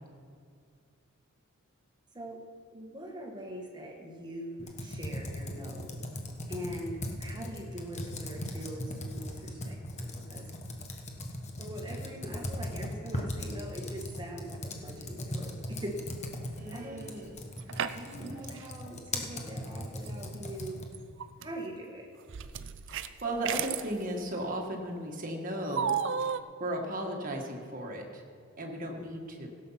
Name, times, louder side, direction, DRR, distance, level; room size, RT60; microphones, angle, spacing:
voice 1, 2.1-2.4 2.7-6.0 6.5-10.5 11.6-16.1 16.7-17.1 17.6-20.8 21.4-22.1 29.0-29.5, equal, 20° right, 1 dB, 1.6 m, -42 dB
Computer keyboard, 4.6-21.0, left 1 dB, 30° left, 1.1 m, -39 dB
voice 2, 16.6-17.4 22.9-26.0 26.6-28.2 28.6-29.5, right 1 dB, 40° right, 1 dB, 1.7 m, -36 dB
sound 1, 17.3-18.3 18.6-18.7 20.1-20.2 20.9-21.4 22.3-23.9 25.7-26.4, right 7 dB, 60° right, 0.5 m, -33 dB
16.0 x 7.7 x 5.8 m, 2.2 s
head